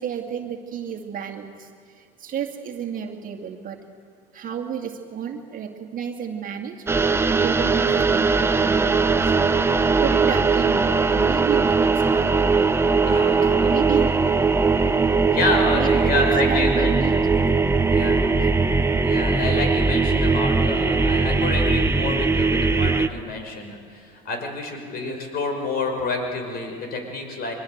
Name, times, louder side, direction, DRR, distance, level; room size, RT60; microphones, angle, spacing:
voice 1, 0.0-3.8 4.3-6.9 7.3-9.3 10.0-12.3 13.0-14.2 15.7-17.2 18.4-18.6, right 8 dB, 40° right, 3 dB, 2.1 m, -31 dB
sound 1, 6.9-23.1, right 4 dB, 10° right, 0.9 m, -20 dB
voice 2, 13.0-13.7 15.2-16.9 17.8-18.3 19.0-27.5, left 2 dB, 50° left, 4 dB, 5.8 m, -28 dB
24.0 x 21.5 x 8.0 m, 2.2 s
supercardioid pair, 100°, 20 cm